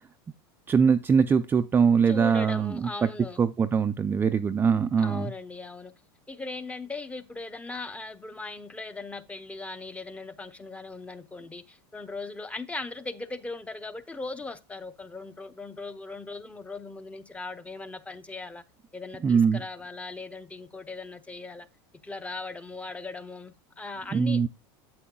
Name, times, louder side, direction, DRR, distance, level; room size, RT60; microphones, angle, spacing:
voice 1, 0.7-3.1 3.4-5.3 19.2-19.6 24.1-24.5, right 6 dB, 15° right, 0.3 m, -22 dB
voice 2, 2.1-3.4 5.0-5.9 6.3-18.6 18.9-21.7 22.0-24.5, left 3 dB, 10° left, 0.7 m, -39 dB
8.5 x 7.8 x 2.3 m
supercardioid pair, 120°, 13 cm